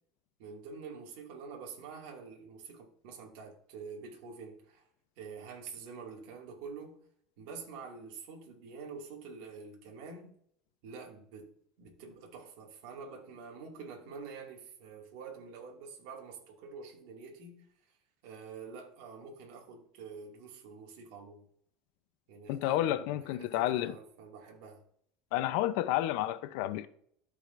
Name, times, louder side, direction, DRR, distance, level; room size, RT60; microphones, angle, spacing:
voice 1, 0.4-4.9 5.2-7.0 7.4-10.3 10.8-18.0 18.2-21.5 22.3-24.8, right 5 dB, 75° right, 2.1 m, -47 dB
voice 2, 22.5-23.9 25.3-26.9, left 14 dB, 70° left, 0.6 m, -30 dB
13.5 x 5.0 x 2.6 m
supercardioid pair, 135°, 0 cm